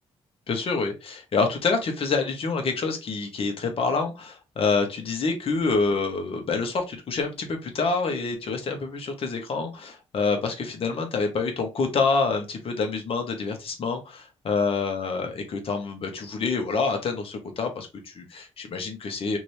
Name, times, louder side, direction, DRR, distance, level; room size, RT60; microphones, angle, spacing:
voice 1, 0.5-19.4, left 4 dB, 60° left, 4 dB, 1.1 m, -27 dB
2.9 x 2.8 x 3.2 m, 0.26 s
cardioid pair, 70°, 11 cm